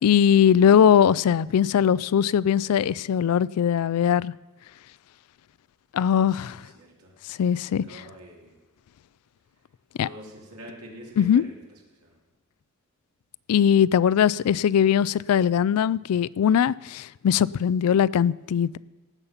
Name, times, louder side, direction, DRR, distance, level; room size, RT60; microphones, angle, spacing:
voice 1, 0.0-4.3 5.9-6.6 7.4-8.0 10.0-10.1 11.2-11.4 13.5-18.8, left 8 dB, 80° left, 0.3 m, -20 dB
voice 2, 6.3-7.1 7.5-8.6 10.0-11.5 12.0-12.1, equal, 90° right, 3.2 m, -46 dB
17.5 x 7.1 x 5.7 m
head